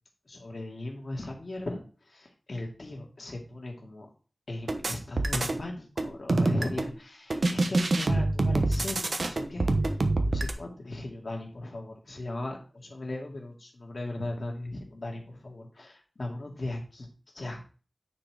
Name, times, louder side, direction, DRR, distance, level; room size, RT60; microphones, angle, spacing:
voice 1, 0.3-4.1 4.5-9.7 10.2-17.1 17.3-17.6, left 2 dB, 65° left, 1 dB, 2.4 m, -38 dB
sound 1, 4.7-5.6 6.0-6.9 7.3-10.5, right 2 dB, 75° right, 1.1 m, -26 dB
9.5 x 4.7 x 4.9 m, 0.37 s
wide cardioid pair, 75°, 0 cm